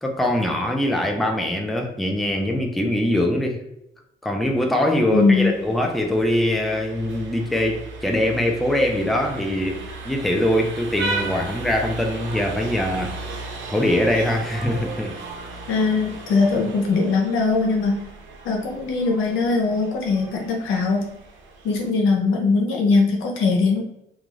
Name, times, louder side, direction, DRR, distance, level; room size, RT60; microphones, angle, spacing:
voice 1, 0.0-3.6 4.2-9.8 10.0-15.1, left 1 dB, ahead, 2 dB, 0.5 m, -22 dB
voice 2, 5.1-5.5 15.7-18.0 18.4-21.0 21.6-23.8, left 4 dB, 85° left, 1 dB, 0.7 m, -20 dB
Vehicle horn car horn honking, 5.1-21.9, right 3 dB, 80° right, 0.7 m, -36 dB
2.5 x 2.3 x 3.0 m, 0.82 s
cardioid pair, 90°, 20 cm